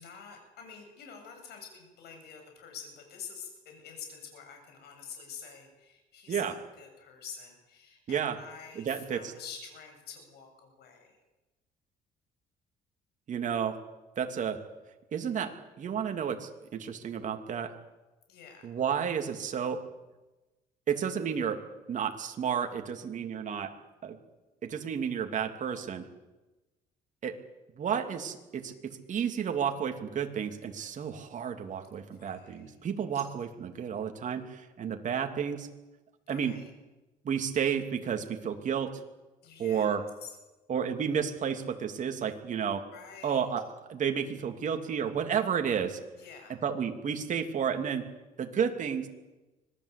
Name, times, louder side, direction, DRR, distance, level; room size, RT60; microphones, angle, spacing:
voice 1, 0.0-11.2 18.3-18.6 32.2-32.7 33.1-33.2 36.3-36.7 39.4-39.9 40.2-40.3 42.9-43.4 46.2-46.6, left 6 dB, 75° left, 4 dB, 8.0 m, -47 dB
voice 2, 8.8-9.3 13.3-13.8 14.2-14.6 15.1-15.5 15.8-17.7 18.6-19.8 20.9-21.6 21.9-23.7 24.0-24.2 24.6-26.0 27.2-27.4 27.8-35.7 36.3-36.6 37.2-39.0 39.6-40.0 40.7-42.9 43.2-46.0 46.6-48.1 48.4-49.1, right 7 dB, 50° right, 5 dB, 2.9 m, -31 dB
25.5 x 19.0 x 8.5 m, 1.1 s
cardioid pair, 110°, 17 cm